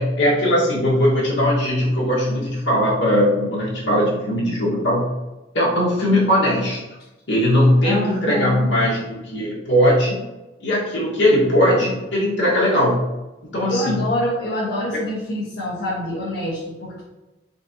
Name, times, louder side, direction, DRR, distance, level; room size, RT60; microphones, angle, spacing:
voice 1, 0.0-5.0 5.5-6.8 7.3-10.2 10.6-13.0 13.5-14.0, equal, 75° left, -7 dB, 1.5 m, -19 dB
voice 2, 7.8-8.7 13.7-17.0, left 1 dB, 60° left, -10 dB, 1.2 m, -26 dB
4.3 x 4.0 x 2.8 m, 1.0 s
head